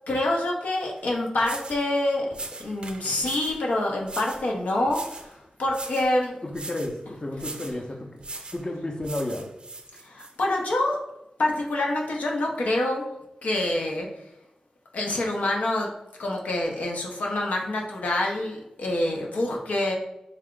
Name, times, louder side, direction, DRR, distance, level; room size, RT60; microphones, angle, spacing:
voice 1, 0.1-2.3 2.6-5.3 5.6-6.4 10.0-11.0 11.4-13.1 13.4-14.1 14.9-15.9 16.2-20.0, left 1 dB, 85° left, -1 dB, 0.7 m, -26 dB
sound 1, 1.0-1.1 1.4-1.8 2.3-3.6 4.0-4.5 4.9-5.3 5.7-6.1 6.5-6.9 7.4-7.8 8.2-8.6 9.0-10.3, right 2 dB, 40° right, 0.4 m, -39 dB
voice 2, 6.4-8.2 8.5-9.5, left 1 dB, 35° left, 1 dB, 0.6 m, -32 dB
3.4 x 2.4 x 3.7 m, 0.86 s
wide cardioid pair, 65°, 2 cm